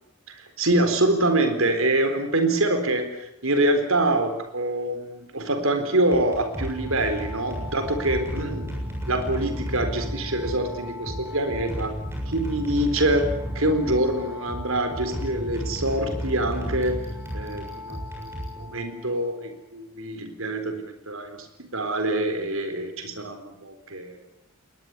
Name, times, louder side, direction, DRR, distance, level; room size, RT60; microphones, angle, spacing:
voice 1, 0.3-8.7 9.1-11.9 12.3-17.0 17.3-21.5 21.7-24.2, right 1 dB, 70° right, 8 dB, 4.1 m, -25 dB
sound 1, 6.0-19.2, equal, 10° right, 7.0 m, -33 dB
21.5 x 20.0 x 9.8 m, 0.83 s
head